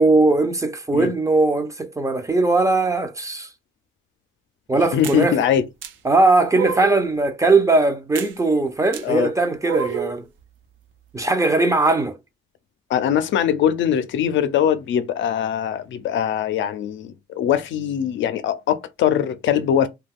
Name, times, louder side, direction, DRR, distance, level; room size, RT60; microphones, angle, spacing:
voice 1, 0.0-3.5 4.7-5.4 6.0-10.3 11.1-12.2, right 2 dB, 15° right, 0.5 m, -19 dB
voice 2, 4.9-5.6 9.0-9.3 12.9-19.9, left 9 dB, 70° left, 0.5 m, -21 dB
sound 1, 5.0-5.2 5.8-5.9 6.5-7.1 8.2-8.3 8.9-9.0 9.6-10.2, right 7 dB, 80° right, 0.6 m, -28 dB
2.3 x 2.3 x 3.5 m
cardioid pair, 90°, 20 cm